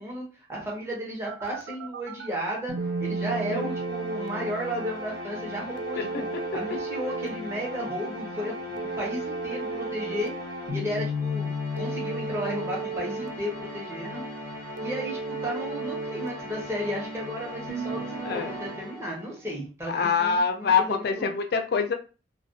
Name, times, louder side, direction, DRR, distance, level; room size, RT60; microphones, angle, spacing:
voice 1, 0.0-2.7 3.0-10.3 10.7-14.2 14.8-21.3, equal, 15° right, -4 dB, 0.8 m, -34 dB
Telephone, 1.3-2.3 2.8-4.3 5.8-7.3 8.8-10.3 11.8-13.3 14.8-16.3, right 5 dB, 75° right, 0.3 m, -35 dB
sound 1, 2.7-19.4, left 1 dB, 55° right, 1.1 m, -35 dB
voice 2, 6.0-6.4 18.3-18.5 19.9-21.9, left 5 dB, 60° left, 5 dB, 0.4 m, -25 dB
2.4 x 2.2 x 2.5 m, 0.34 s
head